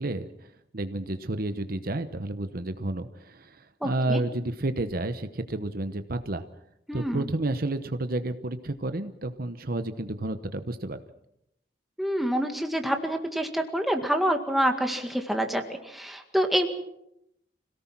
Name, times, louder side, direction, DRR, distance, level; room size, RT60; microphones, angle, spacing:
voice 1, 0.0-6.4 6.9-11.0, right 2 dB, 55° right, 9 dB, 1.0 m, -31 dB
voice 2, 3.8-4.2 6.9-7.2 12.0-16.7, equal, ahead, 4 dB, 2.0 m, -27 dB
26.0 x 18.0 x 6.1 m, 0.79 s
head